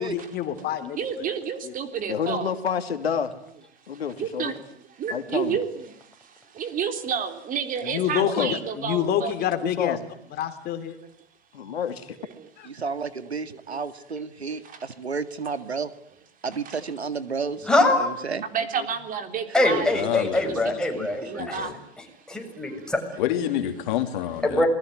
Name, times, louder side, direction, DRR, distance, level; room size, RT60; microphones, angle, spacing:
voice 1, 0.0-1.0 1.6-1.7 7.8-8.5 8.8-10.0 10.4-10.9 12.6-12.7, left 10 dB, 30° left, 9 dB, 3.0 m, -27 dB
voice 2, 1.0-2.5 4.2-4.5 5.0-5.9 6.6-9.5 13.2-13.4 13.7-13.8 14.1-14.6 16.7-16.8 18.5-20.8 21.3-21.7, right 7 dB, 25° right, 8 dB, 3.7 m, -30 dB
voice 3, 2.1-3.3 3.9-4.5 5.1-5.6 8.2-8.5 9.6-10.0 11.5-11.9 18.8-18.9, left 7 dB, 70° left, 9 dB, 2.6 m, -28 dB
voice 4, 12.7-15.9 16.4-17.7 18.0-18.4, right 5 dB, 85° right, 12 dB, 2.1 m, -31 dB
voice 5, 17.7-18.1 19.5-21.7 22.3-23.0 24.4-24.7, left 2 dB, ahead, 2 dB, 7.2 m, -23 dB
voice 6, 19.9-20.5 20.9-21.1 21.4-21.7 23.2-24.6, left 11 dB, 50° left, 7 dB, 3.2 m, -28 dB
28.0 x 21.0 x 9.4 m, 0.70 s
figure-of-eight pair, 105°, 31 cm